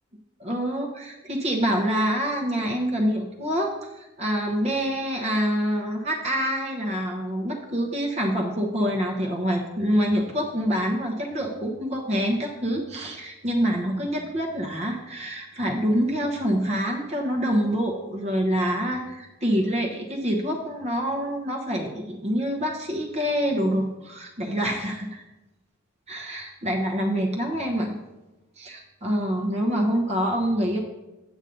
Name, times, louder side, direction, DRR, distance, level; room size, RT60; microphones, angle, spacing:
voice 1, 0.4-25.2 26.1-28.0 28.6-30.8, equal, 35° right, 0 dB, 1.0 m, -26 dB
8.2 x 8.0 x 3.9 m, 1.0 s
head